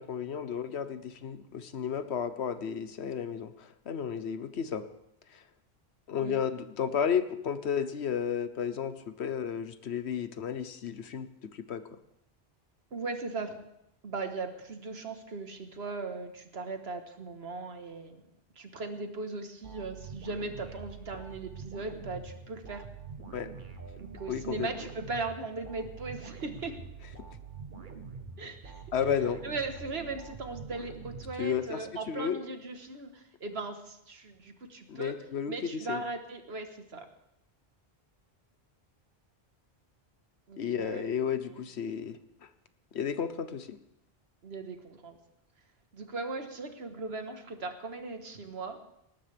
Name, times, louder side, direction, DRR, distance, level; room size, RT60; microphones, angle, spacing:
voice 1, 0.0-4.9 5.3-5.4 6.1-11.8 23.3-23.5 24.3-24.7 28.9-29.4 31.4-32.4 34.9-36.0 40.6-42.5 42.9-43.8, left 7 dB, 85° left, 11 dB, 1.2 m, -33 dB
voice 2, 12.9-13.5 14.0-18.2 18.5-22.8 24.0-26.7 28.4-28.8 29.4-35.1 35.5-37.1 40.5-41.1 41.4-41.6 44.4-45.2 45.9-48.8, right 3 dB, 75° right, 6 dB, 1.7 m, -38 dB
sound 1, 19.6-31.9, right 5 dB, 50° right, 1.3 m, -45 dB
19.5 x 18.0 x 3.5 m, 0.80 s
omnidirectional pair, 1.1 m